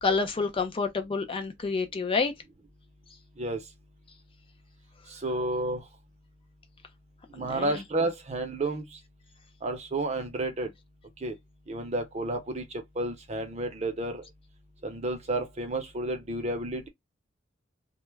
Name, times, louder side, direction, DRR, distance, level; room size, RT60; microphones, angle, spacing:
voice 1, 0.0-2.3 7.4-7.8, left 4 dB, 25° left, 0.4 m, -28 dB
voice 2, 5.1-5.8 7.3-8.9 9.6-10.7 11.2-11.3 11.7-12.6 13.0-14.2 14.8-16.9, right 2 dB, 35° right, 0.6 m, -31 dB
2.2 x 2.0 x 3.1 m
head